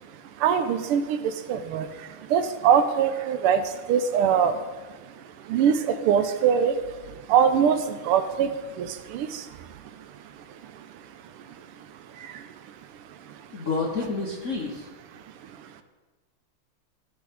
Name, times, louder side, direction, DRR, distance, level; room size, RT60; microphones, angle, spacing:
voice 1, 0.4-1.2 1.5-1.9 2.3-3.6 3.9-4.5 5.5-6.7 7.3-8.5 8.8-9.4, right 8 dB, 85° right, 10 dB, 1.6 m, -22 dB
voice 2, 13.5-14.8, left 3 dB, 50° left, -1 dB, 1.0 m, -29 dB
16.0 x 6.2 x 3.6 m, 1.3 s
omnidirectional pair, 2.4 m